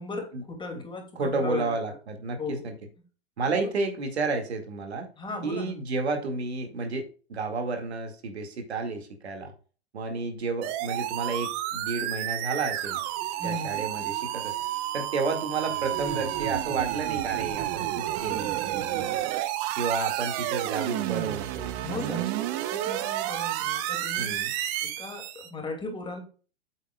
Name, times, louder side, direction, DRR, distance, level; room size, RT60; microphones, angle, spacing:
voice 1, 0.0-1.8 2.4-2.6 5.2-5.7 13.4-13.8 21.8-24.4 24.8-26.2, left 3 dB, 15° left, 3 dB, 2.6 m, -37 dB
voice 2, 1.2-2.7 3.4-5.1 5.4-9.5 9.9-13.0 13.4-14.5 14.9-19.1 19.8-22.3 24.2-24.5, right 4 dB, 75° right, 4 dB, 2.3 m, -31 dB
sound 1, 10.6-25.5, right 14 dB, 40° right, 1.0 m, -30 dB
8.2 x 8.1 x 2.4 m, 0.37 s
hypercardioid pair, 100°, 32 cm